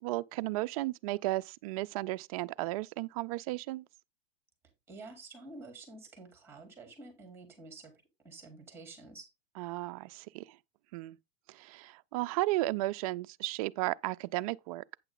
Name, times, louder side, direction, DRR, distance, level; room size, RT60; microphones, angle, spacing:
voice 1, 0.0-3.8 9.6-10.6 10.9-11.2 11.5-14.8, right 18 dB, 40° right, 0.4 m, -34 dB
voice 2, 4.9-7.9 8.2-9.3, right 3 dB, 5° right, 3.9 m, -49 dB
9.1 x 6.7 x 3.8 m
supercardioid pair, 160°, 30 cm